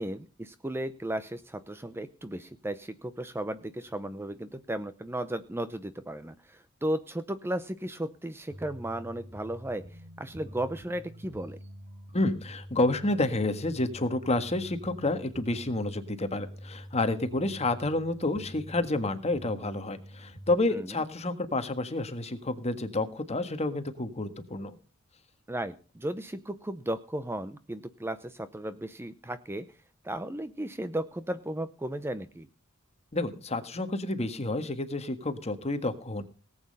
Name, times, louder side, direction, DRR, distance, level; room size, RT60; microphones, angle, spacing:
voice 1, 0.0-11.6 20.7-21.0 25.5-29.8 30.0-32.5, right 1 dB, 10° right, 12 dB, 0.6 m, -35 dB
sound 1, 8.5-20.6, equal, 35° right, 3.3 m, -47 dB
voice 2, 12.1-24.7 33.1-36.2, left 2 dB, 30° left, 9 dB, 1.6 m, -29 dB
18.5 x 8.7 x 5.5 m, 0.35 s
head